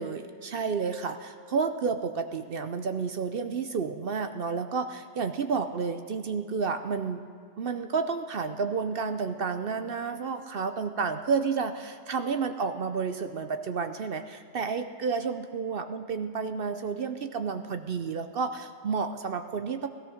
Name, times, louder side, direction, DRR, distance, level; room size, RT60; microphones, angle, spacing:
voice 1, 0.0-7.2 7.6-19.9, right 5 dB, 55° right, 8 dB, 0.7 m, -31 dB
17.0 x 13.5 x 6.4 m, 2.4 s
omnidirectional pair, 1.4 m